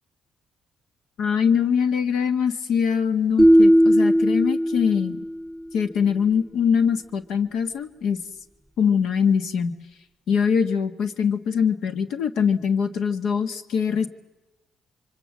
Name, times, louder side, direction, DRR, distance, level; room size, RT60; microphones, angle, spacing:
voice 1, 1.2-5.2 5.7-8.2 8.8-9.7 10.3-14.1, left 7 dB, 80° left, 11 dB, 1.6 m, -23 dB
sound 1, 3.4-5.5, equal, ahead, 3.0 m, -17 dB
25.5 x 24.5 x 7.4 m, 1.1 s
cardioid pair, 90°, 0 cm